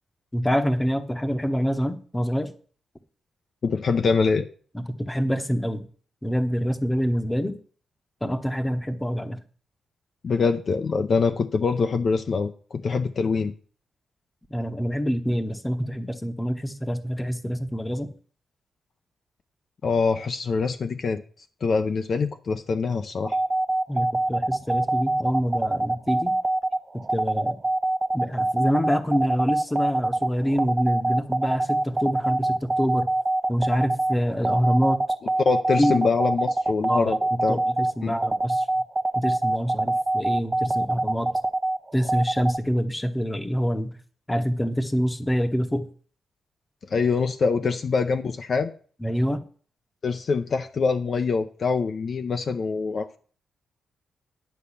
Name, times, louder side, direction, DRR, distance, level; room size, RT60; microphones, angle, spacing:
voice 1, 0.3-2.5 4.7-5.9 6.2-7.5 8.2-9.4 14.5-18.1 23.9-26.4 27.1-27.6 28.1-33.1 33.5-35.0 35.8-36.0 36.9-38.7 39.1-41.3 41.9-43.9 44.3-45.9 49.0-49.4, equal, 10° left, 9 dB, 1.0 m, -26 dB
voice 2, 3.6-4.5 10.2-13.5 19.8-21.2 21.6-23.4 35.4-37.6 38.0-38.2 46.9-48.7 50.0-53.2, left 4 dB, 45° left, 7 dB, 0.6 m, -24 dB
sound 1, 23.2-42.6, right 2 dB, 25° right, 0.6 m, -24 dB
10.5 x 5.4 x 8.5 m, 0.43 s
wide cardioid pair, 160°, 0 cm